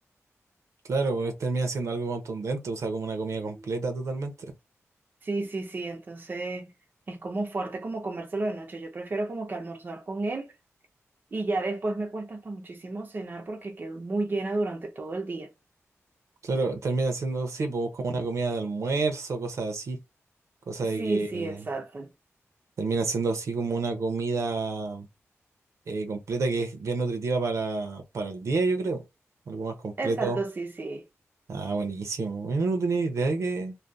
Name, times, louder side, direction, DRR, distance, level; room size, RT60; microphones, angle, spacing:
voice 1, 0.9-4.5 16.4-20.0 20.7-21.7 22.8-25.1 25.9-29.0 29.5-30.4 31.5-33.7, right 3 dB, 75° right, 0.8 m, -29 dB
voice 2, 5.2-6.7 7.1-10.5 11.3-15.5 20.8-22.1 30.0-31.0, right 2 dB, 40° right, 0.6 m, -32 dB
2.7 x 2.3 x 3.4 m
wide cardioid pair, 110°, 5 cm